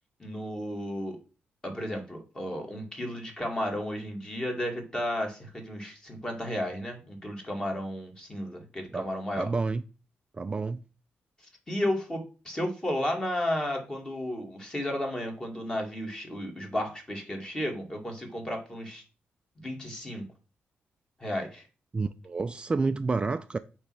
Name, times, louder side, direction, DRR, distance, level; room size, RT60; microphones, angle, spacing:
voice 1, 0.2-1.2 1.6-9.5 11.7-19.0 19.6-20.2 21.2-21.6, left 1 dB, 20° left, 2.1 m, -33 dB
voice 2, 9.4-9.8 10.4-10.8 21.9-23.6, right 4 dB, 25° right, 0.3 m, -29 dB
8.5 x 3.2 x 6.1 m
cardioid pair, 115°, 4 cm